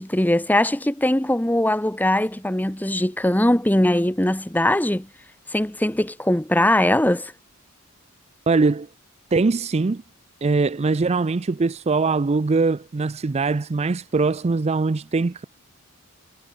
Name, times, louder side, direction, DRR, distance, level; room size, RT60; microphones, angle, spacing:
voice 1, 0.0-5.1 5.5-7.3, left 1 dB, 10° left, 1.1 m, -21 dB
voice 2, 8.5-8.9 9.3-10.0 10.4-15.4, right 3 dB, 30° right, 0.4 m, -22 dB
head